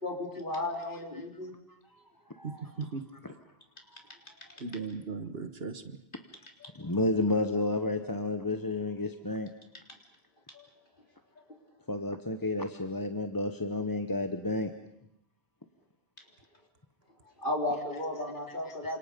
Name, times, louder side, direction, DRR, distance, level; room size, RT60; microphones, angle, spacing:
voice 1, 0.0-1.5 2.4-2.6 4.5-4.6 6.6-6.7 10.5-10.7 17.4-19.0, left 1 dB, 50° left, 1 dB, 4.0 m, -34 dB
voice 2, 0.9-1.2 1.7-1.8 2.3-2.4 3.9-4.1 6.7-9.5 11.9-14.7 18.5-18.6 18.8-19.0, left 2 dB, 20° left, 6 dB, 1.0 m, -31 dB
voice 3, 2.4-3.0 4.6-6.0, right 4 dB, 70° right, 9 dB, 1.7 m, -37 dB
28.5 x 26.5 x 5.3 m, 0.76 s
omnidirectional pair, 1.1 m